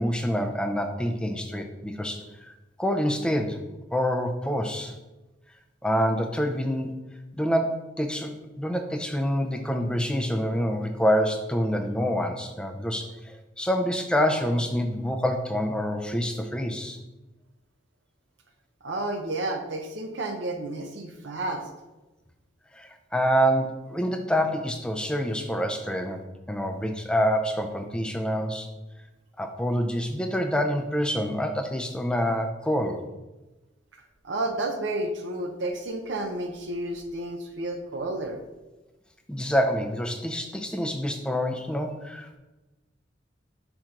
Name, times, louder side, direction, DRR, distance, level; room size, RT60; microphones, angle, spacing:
voice 1, 0.0-2.5 2.8-3.6 3.9-4.9 5.8-7.0 7.3-17.0 22.7-28.7 29.4-33.0 39.3-42.4, equal, 5° left, 5 dB, 0.5 m, -27 dB
voice 2, 18.8-21.7 34.2-38.4, right 2 dB, 70° right, 4 dB, 0.7 m, -31 dB
5.6 x 4.5 x 3.8 m, 1.1 s
head